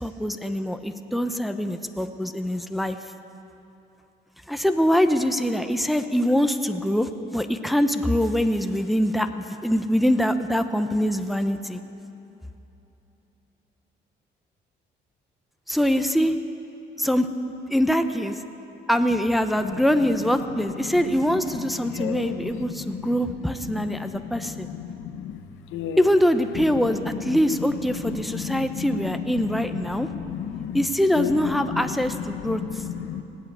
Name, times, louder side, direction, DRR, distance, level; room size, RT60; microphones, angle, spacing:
voice 1, 0.0-3.0 4.5-11.8 15.7-16.3 17.0-17.3 17.7-18.4 18.9-24.7 26.0-30.1 30.7-32.6, equal, ahead, 7 dB, 0.8 m, -23 dB
voice 2, 20.8-25.4 25.7-26.1 26.6-30.8 31.1-33.2, left 9 dB, 90° left, 8 dB, 0.8 m, -33 dB
18.5 x 8.3 x 8.2 m, 3.0 s
cardioid pair, 90°, 20 cm